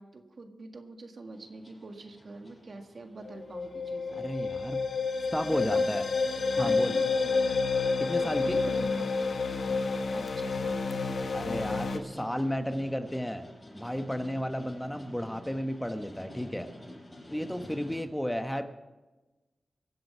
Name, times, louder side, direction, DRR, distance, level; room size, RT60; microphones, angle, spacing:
voice 1, 0.0-4.3 5.5-5.8 6.6-7.6 8.2-9.2 10.1-11.1, right 3 dB, 60° right, 5 dB, 1.7 m, -44 dB
sound 1, 1.3-18.0, left 1 dB, 25° left, 5.9 m, -50 dB
sound 2, 3.3-12.0, left 4 dB, 75° left, 1.1 m, -29 dB
voice 2, 4.2-4.9 5.3-6.0 6.6-6.9 8.0-8.6 11.3-13.5 13.7-16.7 17.3-18.6, equal, 5° left, 7 dB, 1.0 m, -33 dB
23.5 x 7.8 x 5.6 m, 1.2 s
cardioid pair, 60°, 0 cm